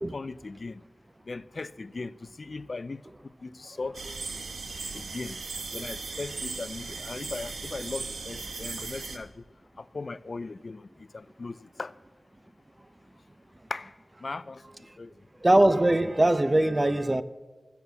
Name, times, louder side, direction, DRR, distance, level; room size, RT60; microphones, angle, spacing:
voice 1, 0.1-0.8 1.3-3.0 3.4-4.1 4.9-5.4 5.7-9.4 9.8-11.9 13.7-13.9 14.2-14.6 15.0-15.1, left 3 dB, 55° left, 0.4 m, -38 dB
sound 1, 3.9-9.2, right 4 dB, 80° right, 1.0 m, -37 dB
voice 2, 15.4-17.2, right 1 dB, 25° right, 0.6 m, -21 dB
15.5 x 7.0 x 7.0 m
wide cardioid pair, 65°, 0 cm